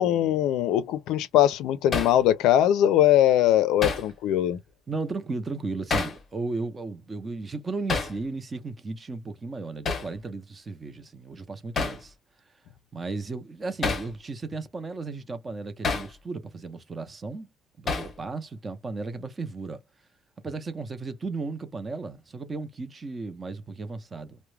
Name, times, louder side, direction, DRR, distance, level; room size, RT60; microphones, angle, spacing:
voice 1, 0.0-4.6, left 12 dB, 80° left, 0.4 m, -21 dB
Hammer, 1.9-2.2 3.8-4.1 5.9-6.2 7.9-8.2 9.8-10.1 11.8-12.0 13.8-14.1 15.8-16.1 17.9-18.2, left 4 dB, 35° left, 0.7 m, -28 dB
voice 2, 4.9-12.1 12.9-17.5 17.8-19.8 20.4-24.4, right 3 dB, 25° right, 0.6 m, -35 dB
2.3 x 2.1 x 3.1 m
cardioid pair, 135°, 0 cm